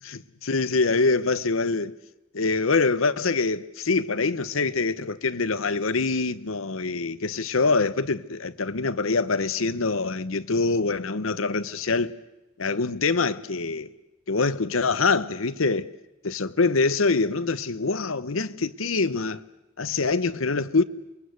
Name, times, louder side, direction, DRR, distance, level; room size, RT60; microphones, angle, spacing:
voice 1, 0.0-1.9 2.3-12.1 12.6-13.9 14.3-15.9 16.2-19.4 19.8-20.8, left 3 dB, 80° left, 1.0 m, -24 dB
27.5 x 22.0 x 8.1 m
head